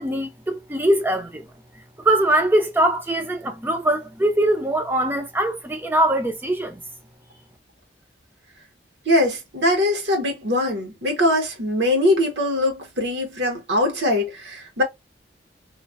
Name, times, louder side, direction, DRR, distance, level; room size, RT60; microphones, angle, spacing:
voice 1, 0.0-1.4 2.0-6.8, right 1 dB, 10° right, 0.5 m, -22 dB
voice 2, 9.1-14.8, left 1 dB, 70° right, 1.0 m, -22 dB
3.1 x 2.1 x 2.4 m
head